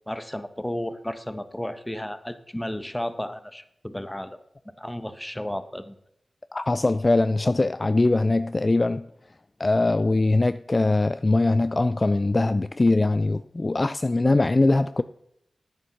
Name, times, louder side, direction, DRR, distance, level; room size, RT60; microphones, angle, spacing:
voice 1, 0.1-4.4 4.8-6.0, left 1 dB, 10° left, 1.1 m, -33 dB
voice 2, 6.5-9.1 9.6-15.0, left 2 dB, 40° left, 0.4 m, -22 dB
9.5 x 9.2 x 5.9 m
cardioid pair, 45°, 0 cm